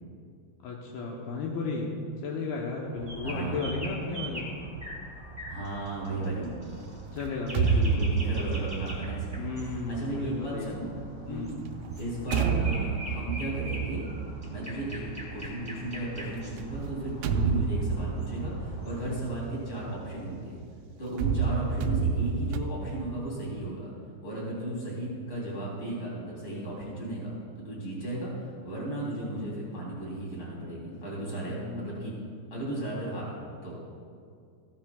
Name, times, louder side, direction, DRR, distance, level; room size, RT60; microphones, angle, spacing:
voice 1, 0.6-1.9 2.2-4.5 6.1-6.6 7.1-8.0 9.3-10.8 11.3-11.6 31.5-32.0, left 3 dB, 85° left, -2 dB, 2.1 m, -34 dB
sound 1, 3.0-19.0, equal, 15° right, 1.1 m, -42 dB
voice 2, 3.2-3.7 5.5-6.5 7.6-10.9 11.2-11.6 12.0-14.1 14.5-15.0 15.3-20.6 21.0-23.9 24.2-32.1 32.5-33.3 33.6-33.8, right 1 dB, 25° left, -5 dB, 3.2 m, -35 dB
sound 2, 7.3-11.0 11.7-15.3 16.6-20.6 21.1-22.6, right 5 dB, 85° right, 2.8 m, -30 dB
15.0 x 12.5 x 2.3 m, 2.3 s
omnidirectional pair, 5.5 m